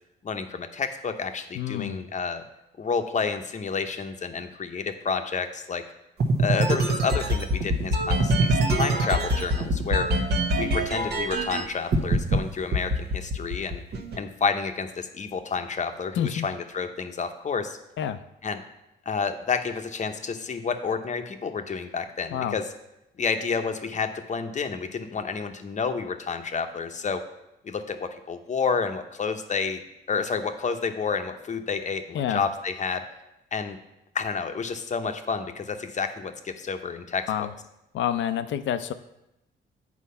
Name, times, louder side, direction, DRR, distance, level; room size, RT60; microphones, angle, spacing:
voice 1, 0.2-2.4 2.8-5.8 6.4-10.1 10.6-13.8 14.2-17.8 18.4-18.6 19.1-22.7 23.2-27.2 27.6-29.8 30.1-33.1 33.5-33.8 34.1-37.5, left 5 dB, 35° left, 7 dB, 0.8 m, -30 dB
voice 2, 1.6-2.0 16.2-16.5 18.0-18.2 22.3-22.5 32.1-32.4 37.3-37.5 37.9-38.9, left 10 dB, 70° left, 12 dB, 0.6 m, -28 dB
sound 1, 6.2-11.6 11.9-12.4 12.7-14.2, right 1 dB, 55° right, 1.1 m, -23 dB
8.5 x 4.5 x 5.6 m, 0.89 s
cardioid pair, 90°, 20 cm